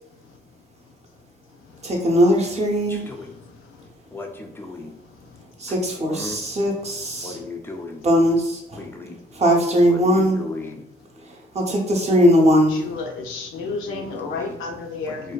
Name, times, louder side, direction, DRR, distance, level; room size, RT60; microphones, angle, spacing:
voice 1, 1.8-3.1 5.6-7.4 8.0-8.8 9.3-10.4 11.5-12.8, equal, 35° right, 0 dB, 0.6 m, -19 dB
voice 2, 4.1-4.9 6.1-6.4 7.2-8.0 8.7-9.2 9.9-10.8 13.9-14.5 15.1-15.3, left 2 dB, 10° left, 3 dB, 0.3 m, -36 dB
voice 3, 12.7-15.3, left 4 dB, 85° left, 2 dB, 0.5 m, -31 dB
2.5 x 2.2 x 2.2 m, 0.83 s
cardioid pair, 90°, 20 cm